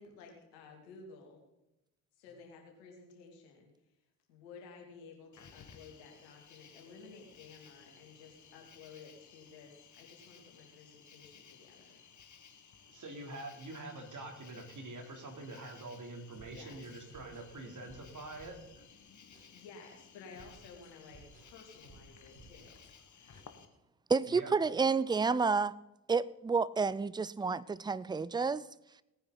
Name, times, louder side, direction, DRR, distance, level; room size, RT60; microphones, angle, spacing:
voice 1, 0.0-1.4 2.2-3.7 4.3-12.0 16.4-16.8 19.5-22.8, left 5 dB, 75° left, 1 dB, 2.8 m, -54 dB
Cricket, 5.3-23.7, left 6 dB, 40° left, 1.6 m, -58 dB
voice 2, 12.9-18.8 24.3-24.5, right 2 dB, 45° right, 3 dB, 3.2 m, -45 dB
sound 1, 16.3-18.9 19.3-19.5 20.3-22.9 23.3-23.5, right 2 dB, 70° right, 5.1 m, -58 dB
voice 3, 24.1-25.8 26.1-28.6, right 4 dB, 10° right, 19 dB, 0.5 m, -30 dB
18.0 x 9.7 x 4.0 m, 0.92 s
figure-of-eight pair, 40°, 43 cm